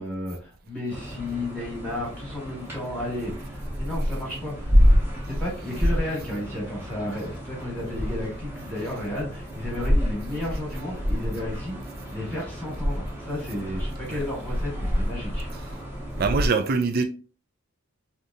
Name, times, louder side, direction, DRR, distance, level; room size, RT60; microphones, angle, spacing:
voice 1, 0.0-4.7 5.3-11.8 12.1-15.5, left 1 dB, 5° left, 1.2 m, -33 dB
sound 1, 0.9-16.5, equal, 10° right, 0.8 m, -27 dB
voice 2, 16.2-17.0, right 4 dB, 40° right, 0.4 m, -23 dB
3.4 x 2.7 x 2.6 m
head